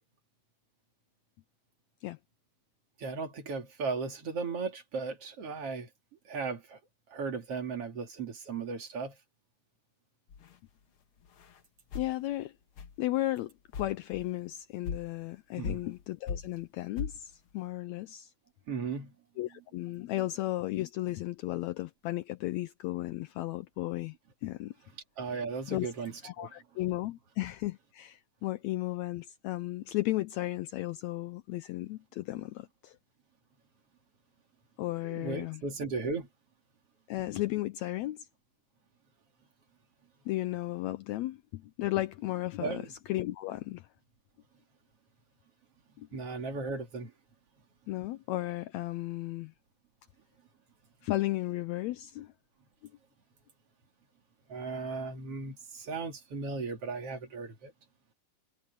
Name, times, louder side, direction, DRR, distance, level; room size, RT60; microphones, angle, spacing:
voice 1, 3.0-5.9 6.2-6.8 7.1-9.1 15.6-15.8 18.7-19.1 25.2-26.5 35.0-36.3 42.6-42.9 46.1-47.1 54.5-57.7, right 4 dB, 50° right, 3.1 m, -36 dB
sound 1, 10.3-10.6 11.3-11.6 11.9-12.1 12.8-13.0 13.4-13.5 13.7-14.3 14.8-15.1 15.6-16.0 16.3-16.6 17.0-17.2, left 6 dB, 50° left, 1.8 m, -38 dB
voice 2, 12.0-12.5 13.0-18.3 19.4-24.2 24.4-24.7 25.7-25.9 26.2-33.0 34.8-35.6 37.1-38.3 40.3-43.9 46.0-46.1 47.9-49.5 51.0-52.3, left 17 dB, 90° left, 1.6 m, -34 dB
omnidirectional pair, 3.8 m